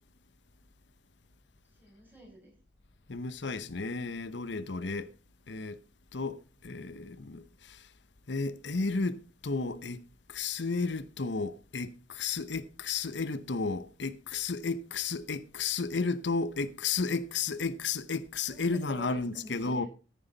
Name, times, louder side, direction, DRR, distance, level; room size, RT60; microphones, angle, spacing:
voice 1, 1.8-2.5 18.5-19.9, right 1 dB, 10° right, 5.9 m, -49 dB
voice 2, 3.1-5.1 5.5-5.8 6.1-7.8 8.3-10.0 10.3-19.9, left 4 dB, 75° left, 0.9 m, -33 dB
14.0 x 9.5 x 4.0 m
head